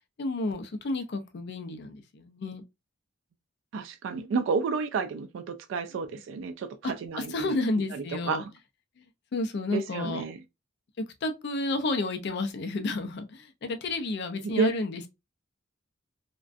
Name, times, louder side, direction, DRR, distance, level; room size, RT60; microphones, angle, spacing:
voice 1, 0.2-2.6 7.3-8.4 9.0-10.2 11.2-15.1, left 2 dB, 60° left, 0.4 m, -31 dB
voice 2, 3.7-7.5 7.9-8.5 9.7-10.4 14.4-14.7, right 5 dB, 70° right, 0.3 m, -30 dB
2.4 x 2.2 x 2.4 m
head